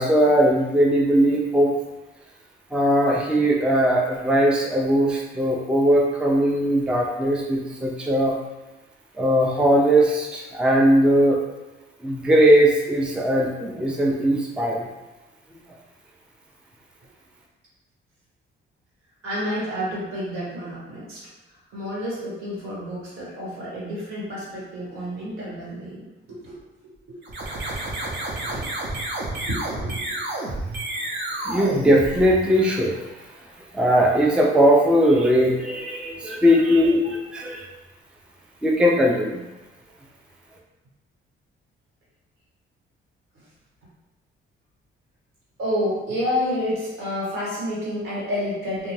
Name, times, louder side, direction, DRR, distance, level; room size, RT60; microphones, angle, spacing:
voice 1, 0.0-1.7 2.7-8.4 9.2-11.4 12.0-14.9 31.4-33.2 33.7-37.6 38.6-39.4, equal, 5° right, -2 dB, 0.4 m, -19 dB
voice 2, 19.2-21.2 21.7-26.5 27.1-27.2 28.4-28.7 29.4-30.0 45.6-48.9, equal, 80° right, -7 dB, 1.3 m, -29 dB
sound 1, 27.2-32.7, right 2 dB, 60° right, 0.7 m, -30 dB
2.5 x 2.1 x 3.1 m, 1.1 s
cardioid pair, 105°, 21 cm